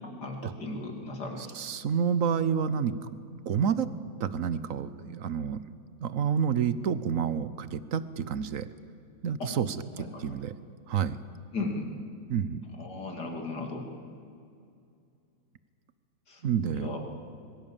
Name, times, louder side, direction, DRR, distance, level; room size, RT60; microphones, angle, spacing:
voice 1, 0.2-1.5 9.4-9.5 10.0-10.3 11.5-11.9 12.8-13.9 16.3-16.4 16.7-17.0, left 3 dB, 60° left, 2 dB, 3.5 m, -36 dB
voice 2, 1.4-2.9 3.5-3.9 4.2-5.6 6.0-8.7 9.2-10.5 10.9-11.2 12.3-12.6 16.4-16.9, right 7 dB, 55° right, 14 dB, 1.1 m, -29 dB
25.5 x 22.5 x 7.4 m, 2.5 s
omnidirectional pair, 2.1 m